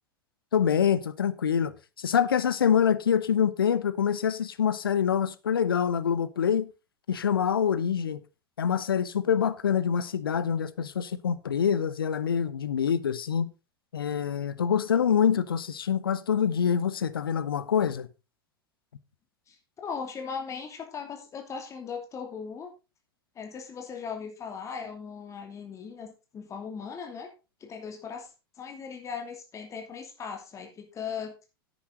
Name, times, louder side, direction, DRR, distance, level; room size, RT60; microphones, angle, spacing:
voice 1, 0.5-6.7 7.1-8.2 8.6-13.5 13.9-18.1, left 8 dB, 70° left, 1.0 m, -25 dB
voice 2, 19.8-22.7 23.3-27.3 27.6-28.3 28.6-31.5, left 6 dB, 25° left, 2.7 m, -38 dB
10.5 x 9.7 x 3.9 m
figure-of-eight pair, 90°, 12 cm